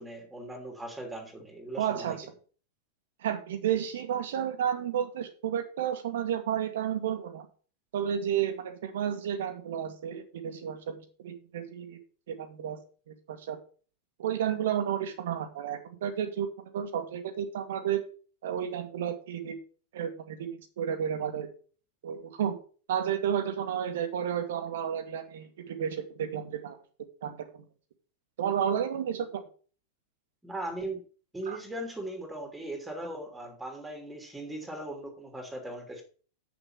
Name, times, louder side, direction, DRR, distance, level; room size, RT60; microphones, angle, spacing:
voice 1, 0.0-2.2 30.4-31.0 31.3-36.0, right 1 dB, 5° right, 4 dB, 3.1 m, -39 dB
voice 2, 1.8-2.2 3.2-7.5 7.9-12.0 12.3-12.8 13.1-13.6 14.2-18.0 18.4-19.6 19.9-21.5 22.0-22.6 22.9-26.8 27.2-27.6 28.4-29.4 31.5-31.6, right 9 dB, 60° right, 8 dB, 1.7 m, -32 dB
8.0 x 6.8 x 5.9 m, 0.39 s
figure-of-eight pair, 90°, 0 cm